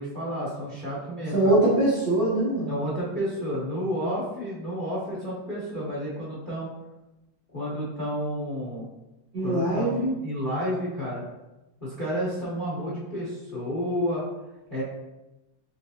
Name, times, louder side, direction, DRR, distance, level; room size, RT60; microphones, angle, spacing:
voice 1, 0.0-1.6 2.7-6.7 7.5-8.8 9.4-11.2 11.8-14.3 14.7-14.8, equal, 35° left, -8 dB, 0.8 m, -31 dB
voice 2, 1.3-2.7 9.3-10.1, right 1 dB, 55° right, -6 dB, 1.2 m, -22 dB
4.5 x 3.2 x 2.8 m, 0.98 s
omnidirectional pair, 2.3 m